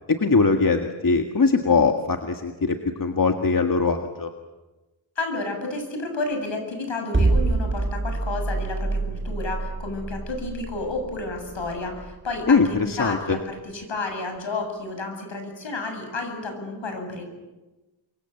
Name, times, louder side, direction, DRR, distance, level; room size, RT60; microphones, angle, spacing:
voice 1, 0.1-4.3 12.5-13.4, left 4 dB, 45° left, 5 dB, 2.0 m, -21 dB
voice 2, 5.2-17.2, left 3 dB, 70° left, 5 dB, 8.0 m, -31 dB
sound 1, 7.1-13.3, right 3 dB, 25° right, 1.6 m, -26 dB
28.5 x 24.0 x 8.1 m, 1.1 s
wide cardioid pair, 80°, 46 cm